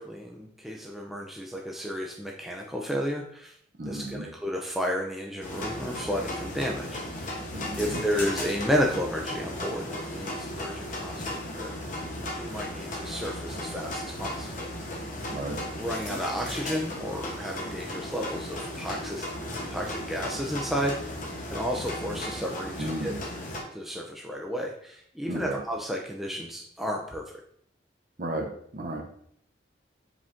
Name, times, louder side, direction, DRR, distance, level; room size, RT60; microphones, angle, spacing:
voice 1, 0.0-3.5 3.8-7.4 7.8-11.7 12.3-14.7 15.8-19.3 19.5-21.0 21.5-23.1 23.7-27.3, equal, ahead, -1 dB, 0.3 m, -32 dB
voice 2, 3.8-4.3 7.5-8.0 15.3-15.6 22.8-23.2 25.3-25.6 28.2-29.0, right 1 dB, 45° right, 3 dB, 0.6 m, -34 dB
sound 1, 5.4-23.6, left 1 dB, 40° left, 0.8 m, -36 dB
5.0 x 2.5 x 3.5 m, 0.64 s
head